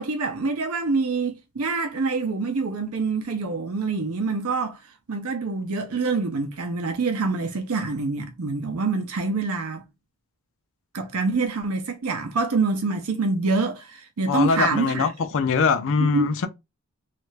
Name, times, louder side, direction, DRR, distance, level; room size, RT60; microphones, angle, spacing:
voice 1, 0.0-4.8 5.1-9.8 10.9-15.1 16.0-16.3, right 3 dB, 70° right, 0.6 m, -26 dB
voice 2, 14.3-16.5, left 5 dB, 60° left, 0.4 m, -22 dB
3.2 x 2.4 x 3.1 m
head